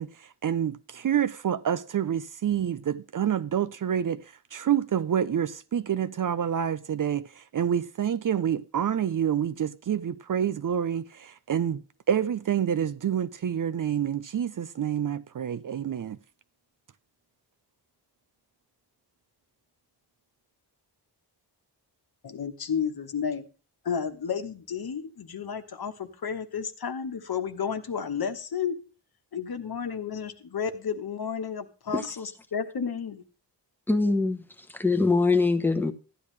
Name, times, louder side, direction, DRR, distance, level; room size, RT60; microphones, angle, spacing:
voice 1, 0.0-4.2 4.5-11.8 12.1-16.2, right 9 dB, 50° right, 0.5 m, -28 dB
voice 2, 22.2-23.4 23.8-28.7 29.3-33.2, left 7 dB, 60° left, 1.2 m, -32 dB
voice 3, 33.9-34.4 34.7-35.9, left 3 dB, 5° left, 1.0 m, -23 dB
13.5 x 10.0 x 3.3 m
wide cardioid pair, 115°, 41 cm